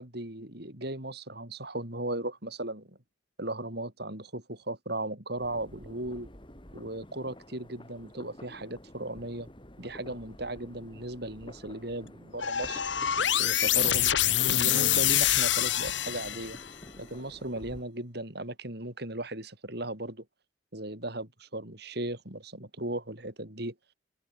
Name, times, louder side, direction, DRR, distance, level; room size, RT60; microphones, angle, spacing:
voice 1, 0.0-3.0 3.4-6.3 6.7-9.5 9.8-12.8 13.4-14.1 14.5-16.6 17.0-20.2 20.7-23.7, right 1 dB, 55° right, 6.4 m, -37 dB
sound 1, 5.4-17.8, left 1 dB, 25° left, 5.9 m, -49 dB
sound 2, 12.4-16.7, left 12 dB, 70° left, 1.3 m, -26 dB
head